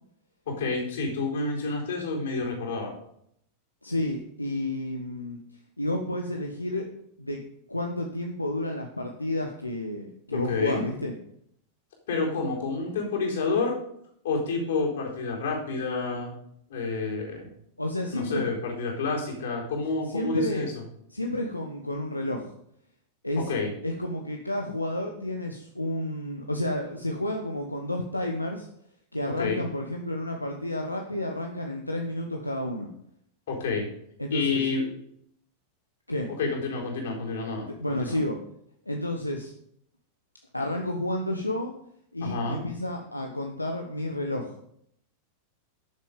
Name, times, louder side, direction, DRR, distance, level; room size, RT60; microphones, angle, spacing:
voice 1, 0.5-2.9 10.3-10.8 12.1-13.8 14.2-16.4 16.7-17.5 18.1-20.7 23.4-23.7 29.4-29.6 33.5-33.9 34.3-34.8 36.4-38.2 42.2-42.6, left 4 dB, 60° left, -1 dB, 4.2 m, -29 dB
voice 2, 3.8-5.4 5.8-6.8 7.2-7.4 7.7-11.1 17.8-18.5 20.1-20.7 21.1-22.5 23.2-23.5 23.8-28.7 29.1-32.9 34.2-34.7 36.1-36.4 37.8-38.4 38.9-39.5 40.5-41.7 42.1-44.5, left 1 dB, 85° left, 2 dB, 1.1 m, -31 dB
12.0 x 7.2 x 5.3 m, 0.71 s
figure-of-eight pair, 90°, 0 cm